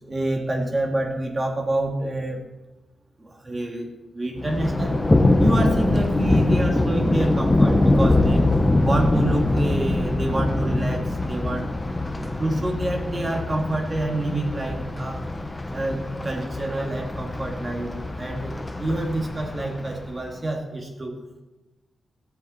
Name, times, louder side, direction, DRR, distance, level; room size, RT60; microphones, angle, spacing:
voice 1, 0.0-2.4 3.2-5.0 5.4-8.5 8.8-11.9 12.4-15.2 15.7-21.2, right 1 dB, 30° right, 1 dB, 2.3 m, -27 dB
Thunder, 4.4-20.3, left 2 dB, 15° left, 1.1 m, -23 dB
16.5 x 7.1 x 4.4 m, 1.1 s
cardioid pair, 85°, 0 cm